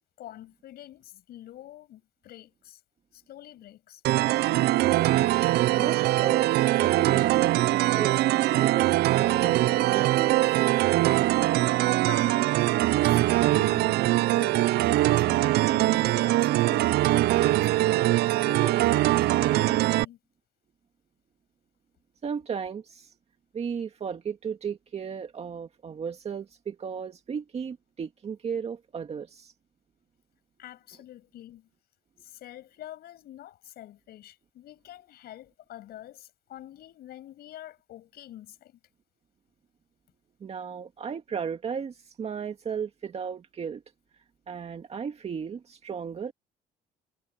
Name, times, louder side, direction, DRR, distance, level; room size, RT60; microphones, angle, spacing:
voice 1, 0.2-2.8 3.1-4.0 11.7-20.2 30.6-31.7 32.2-38.8, left 13 dB, 70° left, 7.1 m, -46 dB
sound 1, 4.0-20.0, right 16 dB, 70° right, 0.5 m, -22 dB
voice 2, 5.8-8.9 9.2-10.6 22.2-23.1 23.5-29.5 40.4-43.8 44.5-46.3, right 6 dB, 40° right, 2.1 m, -35 dB
cardioid pair, 110°, 17 cm